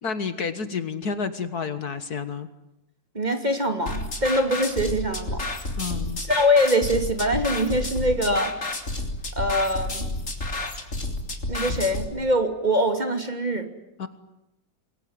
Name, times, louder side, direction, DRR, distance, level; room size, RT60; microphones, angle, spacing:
voice 1, 0.0-2.5 5.8-6.2 14.0-14.1, left 5 dB, 55° left, 11 dB, 1.9 m, -30 dB
voice 2, 3.1-5.5 6.2-8.5 9.4-10.0 11.5-13.7, equal, 20° right, 6 dB, 2.7 m, -23 dB
sound 1, 3.9-12.1, left 2 dB, 40° left, 3.6 m, -30 dB
27.0 x 22.0 x 9.6 m, 0.91 s
omnidirectional pair, 2.0 m